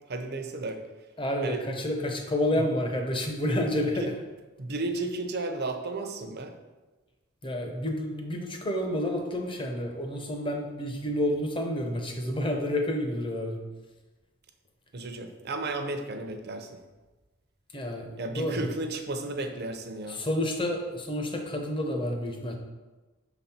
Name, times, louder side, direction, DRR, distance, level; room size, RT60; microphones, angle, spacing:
voice 1, 0.1-0.8 1.4-1.6 2.5-2.6 4.0-4.1 4.6-6.5 14.9-16.8 18.2-20.2, right 2 dB, 50° right, 6 dB, 0.6 m, -33 dB
voice 2, 1.2-4.1 7.4-13.6 17.7-18.6 20.1-22.5, left 1 dB, 25° left, 3 dB, 0.8 m, -29 dB
6.1 x 4.1 x 4.3 m, 1.2 s
head